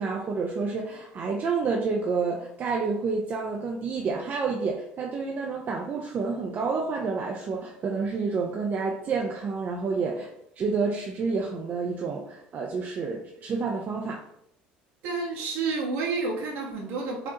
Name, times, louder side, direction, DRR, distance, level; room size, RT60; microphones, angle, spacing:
voice 1, 0.0-10.3 10.6-14.2, right 4 dB, 45° right, 0 dB, 0.6 m, -29 dB
voice 2, 15.0-17.3, right 4 dB, 70° right, -2 dB, 1.2 m, -30 dB
4.8 x 2.3 x 2.9 m, 0.74 s
hypercardioid pair, 75°, 4 cm